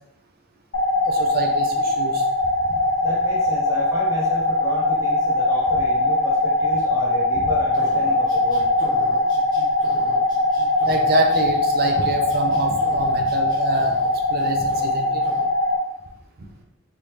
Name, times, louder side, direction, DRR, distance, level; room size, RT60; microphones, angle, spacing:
sound 1, 0.7-15.8, left 2 dB, 50° left, 0.6 m, -21 dB
voice 1, 1.1-2.2 10.9-14.0 14.3-15.2, right 1 dB, 45° right, 3 dB, 0.5 m, -25 dB
voice 2, 3.0-8.7 15.0-15.1, left 2 dB, 15° right, -5 dB, 1.2 m, -32 dB
sound 2, 7.7-11.4 11.8-14.1 14.4-14.9 15.2-15.4, left 1 dB, 20° left, 1.1 m, -40 dB
3.4 x 2.7 x 3.1 m, 0.85 s
head